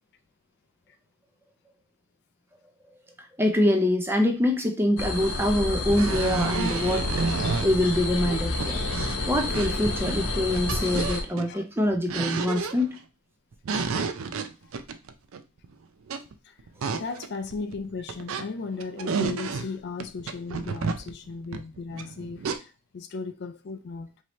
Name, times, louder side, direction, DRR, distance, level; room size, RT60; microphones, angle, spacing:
voice 1, 3.4-13.0, left 1 dB, 10° right, 0.5 m, -25 dB
sound 1, 5.0-11.2, left 2 dB, 70° left, 0.9 m, -29 dB
sound 2, 5.4-5.5 5.9-7.7 8.3-9.8 10.1-11.5 11.9-13.0 13.5-15.7 16.1-16.3 16.6-18.5 18.7-19.7 20.0-22.6, right 4 dB, 70° right, 0.4 m, -31 dB
voice 2, 16.4-24.1, left 4 dB, 50° left, 0.4 m, -36 dB
4.6 x 2.8 x 3.0 m
head